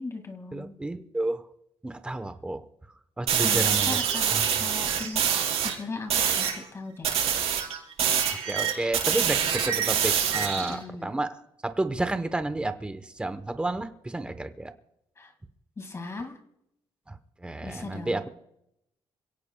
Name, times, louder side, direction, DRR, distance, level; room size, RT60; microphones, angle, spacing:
voice 1, 0.0-0.8 3.4-5.2 5.6-7.1 10.5-11.1 15.2-15.3 15.8-16.4 17.6-18.3, left 3 dB, 25° left, 6 dB, 2.0 m, -38 dB
voice 2, 0.5-1.5 1.8-2.6 3.2-4.0 4.3-4.7 8.3-14.7 17.1-18.3, right 2 dB, 10° right, 10 dB, 0.9 m, -31 dB
sound 1, 3.3-5.7 6.1-6.6 7.0-10.7, right 8 dB, 90° right, 4.5 m, -25 dB
28.0 x 17.0 x 2.3 m, 0.79 s
wide cardioid pair, 160°, 10 cm